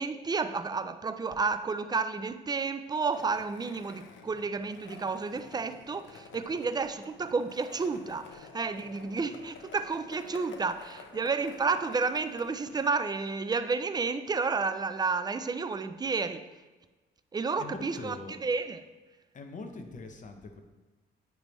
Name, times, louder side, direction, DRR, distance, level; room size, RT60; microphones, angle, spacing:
voice 1, 0.0-16.4 17.3-18.2 18.4-18.8, right 4 dB, 20° right, 10 dB, 0.4 m, -31 dB
Skateboard, 3.1-12.9, left 5 dB, 75° left, 0.7 m, -50 dB
voice 2, 17.6-18.4 19.3-20.6, left 3 dB, 40° left, 5 dB, 0.9 m, -42 dB
9.2 x 3.4 x 3.1 m, 1.2 s
cardioid pair, 90°, 20 cm